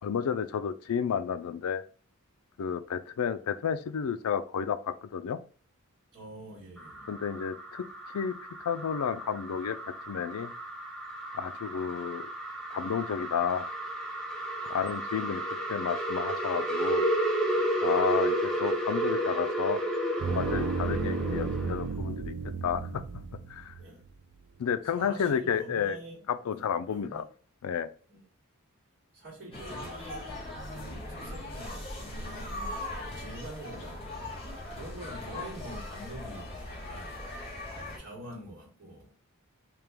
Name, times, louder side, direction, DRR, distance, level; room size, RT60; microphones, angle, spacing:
voice 1, 0.0-1.8 2.6-5.4 7.1-8.4 8.6-10.5 11.3-12.3 12.7-13.7 14.7-17.0 17.8-19.8 20.3-22.4 22.6-23.8 24.6-26.0 26.3-27.2 27.6-27.9, left 7 dB, 85° left, 0.4 m, -31 dB
voice 2, 6.1-7.1 14.6-14.8 17.8-18.0 23.8-24.0 24.9-27.2 28.1-28.3 29.1-30.4 30.7-34.3 34.7-37.2 38.0-39.1, right 1 dB, 55° right, 1.7 m, -46 dB
sound 1, 6.8-21.9, right 1 dB, 5° left, 0.6 m, -32 dB
sound 2, 20.2-24.1, right 4 dB, 75° right, 0.5 m, -33 dB
sound 3, 29.5-38.0, left 1 dB, 25° left, 1.3 m, -39 dB
3.4 x 2.9 x 3.4 m
head